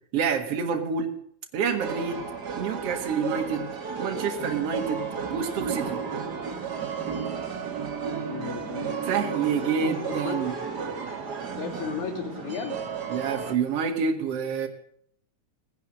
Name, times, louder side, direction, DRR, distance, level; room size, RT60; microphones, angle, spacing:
voice 1, 0.1-1.1 1.5-2.2 2.6-3.7 4.0-5.0 5.3-6.0 9.1-10.5 13.1-14.7, right 6 dB, 60° right, 4 dB, 2.6 m, -27 dB
sound 1, 1.8-13.5, right 6 dB, 40° right, 1.8 m, -33 dB
voice 2, 8.3-10.4 11.6-12.8, left 7 dB, 85° left, 6 dB, 3.5 m, -35 dB
17.5 x 10.5 x 7.7 m, 0.65 s
omnidirectional pair, 3.3 m